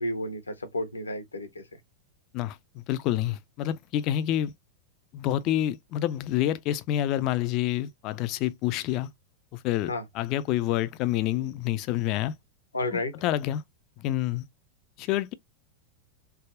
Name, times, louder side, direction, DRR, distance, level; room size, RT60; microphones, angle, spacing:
voice 1, 0.0-1.6 9.9-10.0 12.7-13.1, left 1 dB, 80° left, 0.6 m, -31 dB
voice 2, 2.3-4.5 5.1-9.1 9.5-12.3 12.9-13.6 14.0-14.4 15.0-15.3, left 13 dB, 40° left, 0.3 m, -28 dB
3.4 x 2.0 x 2.3 m
figure-of-eight pair, 90°, 0 cm